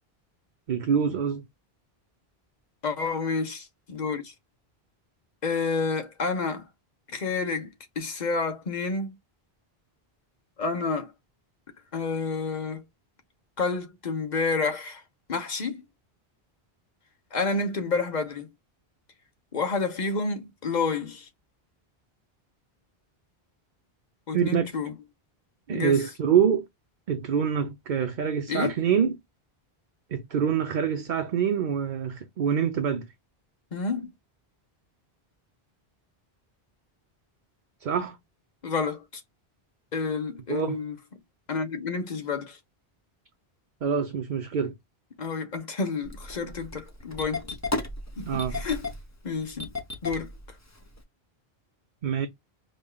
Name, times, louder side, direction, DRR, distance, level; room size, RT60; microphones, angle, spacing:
voice 1, 0.7-1.4 24.3-24.7 25.7-26.6 27.1-29.1 30.1-33.1 37.8-38.2 40.5-40.8 43.8-44.7 48.3-48.6 52.0-52.3, right 7 dB, 55° right, 0.8 m, -25 dB
voice 2, 2.8-4.3 5.4-6.6 7.1-7.7 8.0-9.1 10.6-11.1 11.9-12.8 13.6-15.0 15.3-15.8 17.3-18.5 19.5-21.2 24.3-24.9 25.7-26.0 28.5-28.7 33.7-34.1 38.6-39.2 39.9-41.0 41.5-42.6 45.2-47.6 48.2-48.8 49.2-49.7 50.0-50.3, left 4 dB, 45° left, 1.2 m, -29 dB
Engine starting, 46.0-51.0, left 2 dB, 20° left, 0.8 m, -35 dB
5.2 x 2.3 x 2.3 m
omnidirectional pair, 1.0 m